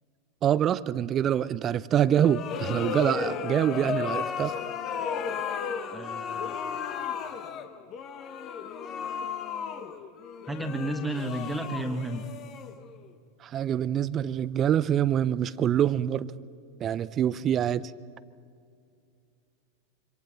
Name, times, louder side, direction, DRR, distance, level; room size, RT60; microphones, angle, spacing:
voice 1, 0.4-4.5 13.4-16.3 16.8-17.9, right 10 dB, 30° right, 18 dB, 0.6 m, -25 dB
sound 1, 2.1-13.1, left 7 dB, 35° left, 1.2 m, -34 dB
voice 2, 5.9-6.6 10.5-12.3, right 1 dB, 5° right, 6 dB, 1.6 m, -32 dB
26.5 x 25.5 x 4.3 m, 2.3 s
figure-of-eight pair, 90°, 0 cm